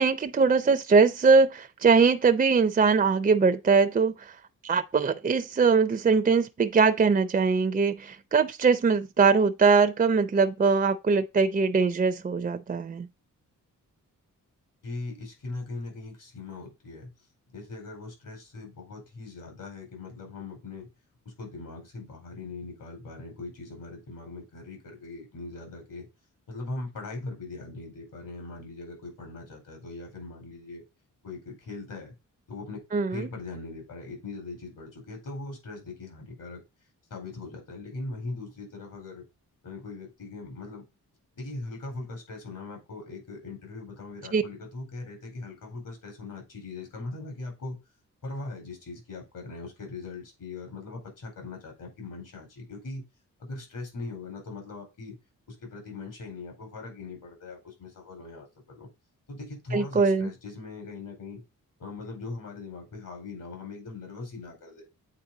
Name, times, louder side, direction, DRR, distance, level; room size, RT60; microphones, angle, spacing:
voice 1, 0.0-4.3 4.6-13.1 32.9-33.3 44.3-44.4 59.7-60.3, right 5 dB, 25° right, 0.5 m, -22 dB
voice 2, 14.8-17.1 17.5-20.9 21.2-26.1 26.5-30.8 31.2-32.1 32.5-32.8 33.1-36.6 37.1-39.2 39.6-40.9 41.4-47.8 48.2-53.0 53.4-55.2 55.5-58.9 59.3-61.4 61.8-64.8, left 3 dB, 75° left, 4.5 m, -40 dB
8.7 x 4.5 x 3.8 m
wide cardioid pair, 145°, 33 cm